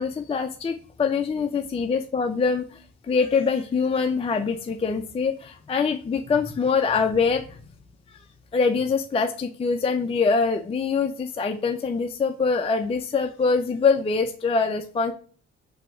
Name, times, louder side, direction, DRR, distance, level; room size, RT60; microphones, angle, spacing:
voice 1, 0.0-7.6 8.5-15.1, left 5 dB, 20° left, 6 dB, 0.4 m, -24 dB
3.8 x 2.8 x 4.6 m, 0.42 s
cardioid pair, 90°, 30 cm